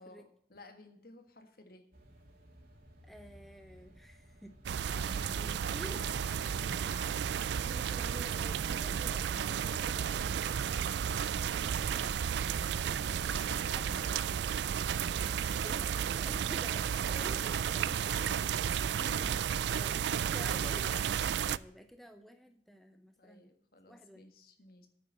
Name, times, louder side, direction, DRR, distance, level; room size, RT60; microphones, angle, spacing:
voice 1, 0.0-1.9 4.8-7.5 9.6-10.3 12.5-14.3 17.3-19.6 22.9-24.9, left 2 dB, 55° left, 6 dB, 1.6 m, -53 dB
sound 1, 1.9-19.6, equal, 50° right, 2.5 m, -58 dB
voice 2, 3.0-4.9 5.7-6.0 7.0-7.1 7.6-10.1 10.4-10.5 11.1-12.3 13.7-14.1 15.2-17.8 19.7-23.5 23.9-24.2, equal, ahead, 7 dB, 0.6 m, -51 dB
sound 2, 4.7-21.6, right 8 dB, 70° right, 0.3 m, -33 dB
9.1 x 7.1 x 7.5 m, 0.68 s
head